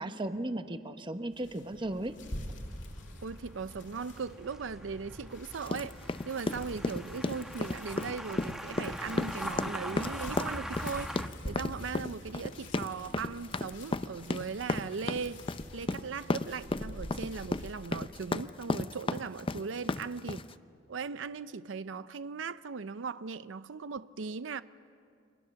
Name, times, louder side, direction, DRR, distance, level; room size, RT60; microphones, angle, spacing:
voice 1, 0.0-2.2, right 1 dB, 25° right, 1.0 m, -36 dB
sound 1, 1.3-18.0, left 1 dB, 75° left, 2.6 m, -47 dB
sound 2, 2.2-11.3, equal, 5° right, 1.0 m, -42 dB
voice 2, 3.2-6.0 6.3-15.5 15.7-20.5 20.9-24.6, right 5 dB, 85° right, 0.5 m, -38 dB
sound 3, 5.7-20.5, left 2 dB, 30° left, 0.5 m, -34 dB
29.5 x 25.0 x 7.0 m
head